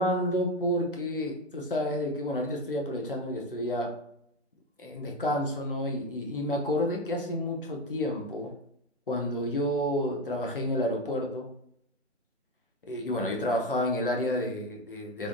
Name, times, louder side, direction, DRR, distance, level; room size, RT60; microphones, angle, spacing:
voice 1, 0.0-4.0 4.8-8.5 9.1-11.5 12.9-15.3, left 1 dB, 50° left, 1 dB, 0.7 m, -30 dB
3.4 x 2.5 x 2.2 m, 0.70 s
figure-of-eight pair, 165°, 35 cm